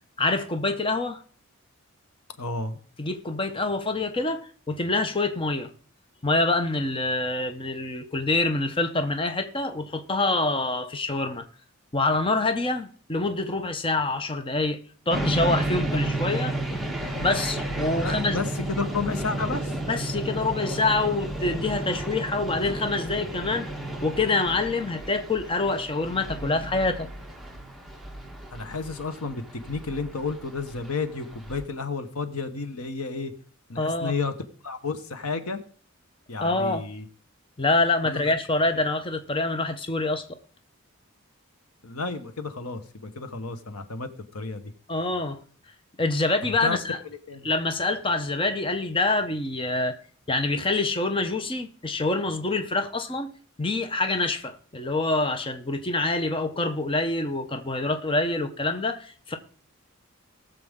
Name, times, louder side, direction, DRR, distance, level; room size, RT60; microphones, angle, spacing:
voice 1, 0.2-1.2 3.0-5.7 6.2-11.4 11.9-14.8 15.1-16.5 17.2-18.4 19.9-23.7 24.0-27.1 33.8-34.1 36.4-36.8 37.6-40.2 44.9-45.4 46.0-47.0 47.4-50.0 50.3-53.3 53.6-59.4, left 2 dB, 25° left, 0.8 m, -26 dB
voice 2, 2.4-2.8 18.0-19.7 28.5-33.3 33.7-34.3 34.6-35.6 36.3-37.1 38.0-38.3 41.8-44.7 46.4-46.8 47.3-47.5, left 4 dB, 90° left, 1.2 m, -32 dB
sound 1, 15.1-31.6, right 1 dB, ahead, 1.3 m, -32 dB
19.5 x 6.8 x 3.7 m
head